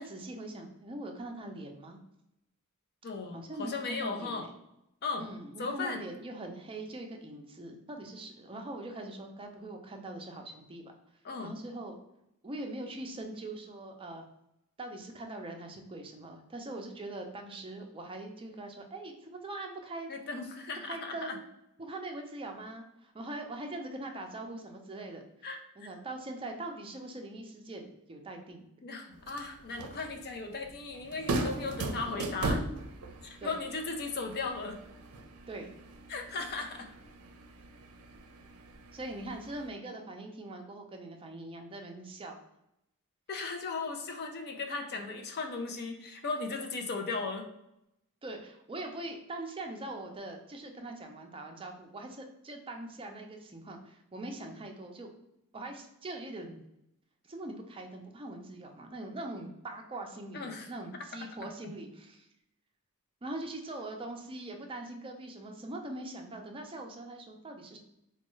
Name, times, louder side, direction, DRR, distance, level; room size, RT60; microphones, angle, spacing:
voice 1, 0.0-2.0 3.3-4.5 5.2-10.8 11.4-12.0 12.4-14.2 14.8-20.1 20.8-21.4 21.8-25.2 25.8-28.6 33.4-33.6 35.5-35.7 38.9-42.4 48.2-55.1 55.5-56.6 57.2-62.3 63.2-67.8, right 2 dB, 25° right, 3 dB, 0.5 m, -42 dB
voice 2, 3.0-4.5 5.0-5.3 5.6-6.0 11.2-11.6 20.1-21.4 25.4-25.6 28.8-32.6 33.2-34.8 36.1-36.9 43.3-47.5 60.3-60.7, left 3 dB, 50° left, 4 dB, 0.5 m, -36 dB
sound 1, 29.1-39.7, right 2 dB, 85° right, 0.5 m, -39 dB
4.3 x 2.2 x 3.0 m, 0.83 s
head